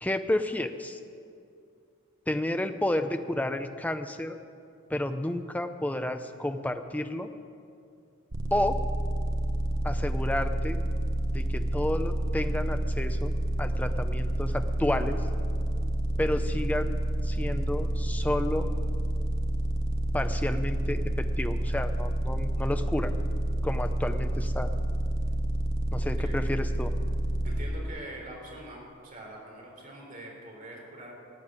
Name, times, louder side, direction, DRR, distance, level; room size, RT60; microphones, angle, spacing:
voice 1, 0.0-1.0 2.3-4.4 4.9-7.3 8.5-8.8 9.8-10.8 11.3-13.3 13.6-15.2 16.2-16.9 17.2-18.7 20.1-23.1 23.6-24.7 25.9-26.9, left 1 dB, 5° left, 8 dB, 0.6 m, -31 dB
sound 1, 8.3-27.6, right 1 dB, 60° right, 1.1 m, -29 dB
voice 2, 26.0-26.5 27.4-31.1, right 1 dB, 40° right, -2 dB, 3.7 m, -44 dB
14.0 x 9.2 x 8.1 m, 2.4 s
head